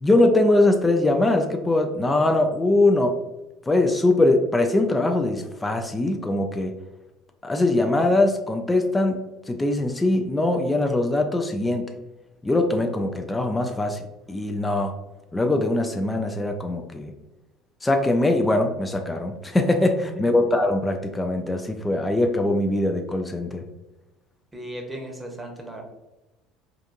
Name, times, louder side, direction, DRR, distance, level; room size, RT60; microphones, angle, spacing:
voice 1, 0.0-3.2 3.7-6.7 7.4-9.2 9.5-11.9 12.4-14.0 14.3-14.9 15.3-17.1 17.8-19.9 20.2-23.6, left 2 dB, 15° left, 4 dB, 0.4 m, -22 dB
voice 2, 24.5-25.8, right 1 dB, 15° right, 1 dB, 0.9 m, -36 dB
3.8 x 2.5 x 2.5 m, 1.0 s
hypercardioid pair, 70°, 0 cm